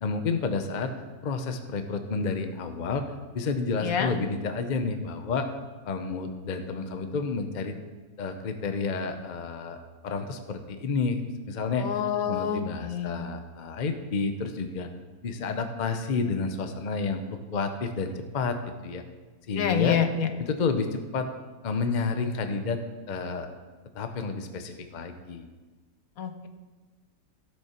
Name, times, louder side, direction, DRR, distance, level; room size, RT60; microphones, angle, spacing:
voice 1, 0.0-0.9 1.2-3.0 3.3-5.5 5.9-7.8 8.2-9.8 10.0-11.9 12.3-14.9 15.2-19.0 19.5-20.0 20.4-21.3 21.6-22.8 23.1-23.5 23.9-25.4, left 4 dB, 40° left, 7 dB, 0.7 m, -30 dB
voice 2, 3.8-4.1 11.8-13.1 19.5-20.3 26.2-26.5, left 8 dB, 70° left, 7 dB, 1.2 m, -27 dB
15.0 x 6.8 x 4.4 m, 1.3 s
omnidirectional pair, 1.6 m